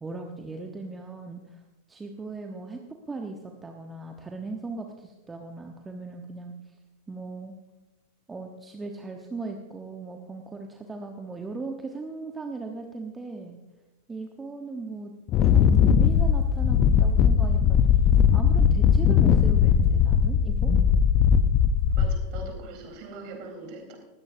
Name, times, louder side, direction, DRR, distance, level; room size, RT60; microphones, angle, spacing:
voice 1, 0.0-1.6 1.9-2.8 3.1-6.5 7.1-7.5 8.3-13.6 14.1-15.1 15.4-17.8 18.3-20.7, right 3 dB, 15° right, 3 dB, 1.2 m, -38 dB
Wind, 15.3-22.4, left 8 dB, 35° left, 0.8 m, -20 dB
voice 2, 21.9-24.0, right 2 dB, 45° right, 2 dB, 4.0 m, -41 dB
20.0 x 16.5 x 2.7 m, 1.1 s
figure-of-eight pair, 90°, 0 cm